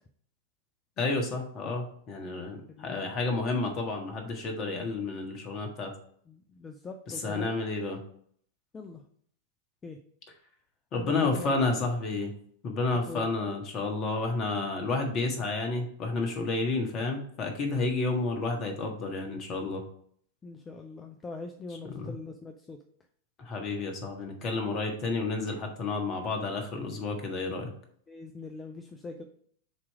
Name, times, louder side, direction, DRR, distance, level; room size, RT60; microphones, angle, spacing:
voice 1, 1.0-5.9 7.1-8.0 10.9-12.3 12.6-19.8 21.9-22.1 23.4-27.7, left 3 dB, 35° left, 3 dB, 1.6 m, -31 dB
voice 2, 6.3-7.5 8.7-9.0 9.8-10.0 11.0-11.9 13.1-13.3 20.4-22.8 28.1-29.2, left 3 dB, 20° left, 4 dB, 0.6 m, -42 dB
7.2 x 3.1 x 4.7 m, 0.62 s
figure-of-eight pair, 95°, 0 cm